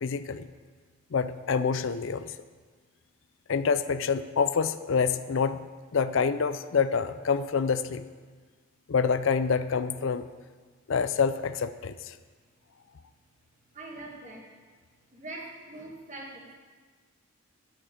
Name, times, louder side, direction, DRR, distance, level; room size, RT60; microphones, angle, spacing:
voice 1, 0.0-0.5 1.1-2.3 3.5-5.6 5.9-8.0 8.9-10.2 10.9-12.1, left 5 dB, 65° left, 12 dB, 0.4 m, -27 dB
voice 2, 13.7-14.5 15.1-16.5, right 2 dB, 35° right, -1 dB, 1.9 m, -42 dB
13.0 x 4.9 x 8.9 m, 1.5 s
head